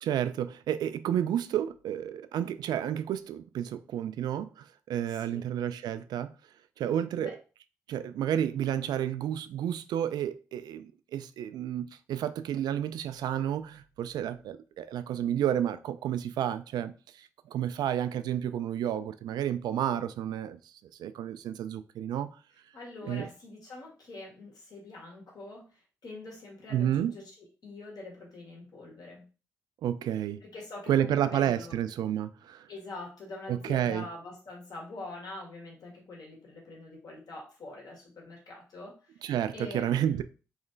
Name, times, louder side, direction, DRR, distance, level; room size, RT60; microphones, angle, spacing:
voice 1, 0.0-6.3 6.8-7.3 7.9-20.6 21.0-22.3 23.0-23.3 26.7-27.1 29.8-30.4 30.9-32.7 33.5-34.1 39.2-40.2, right 10 dB, 70° right, 0.4 m, -31 dB
voice 2, 5.1-5.5 7.2-7.3 22.7-27.3 27.6-29.3 30.4-31.8 32.7-39.2 39.5-40.2, left 2 dB, 60° left, 1.8 m, -44 dB
3.2 x 2.8 x 3.8 m
hypercardioid pair, 40°, 7 cm